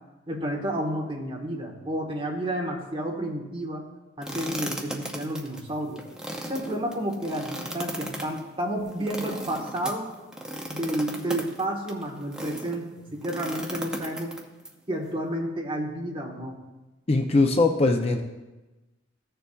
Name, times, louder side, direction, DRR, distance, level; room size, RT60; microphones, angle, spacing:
voice 1, 0.3-3.8 4.2-6.0 6.5-10.1 10.7-14.3 14.9-16.6, right 1 dB, 25° right, 0 dB, 1.2 m, -31 dB
sound 1, 4.2-12.8 13.2-14.7, right 1 dB, 5° right, 0.7 m, -36 dB
voice 2, 17.1-18.2, left 3 dB, 30° left, 4 dB, 0.5 m, -21 dB
15.0 x 6.8 x 2.3 m, 1.1 s
head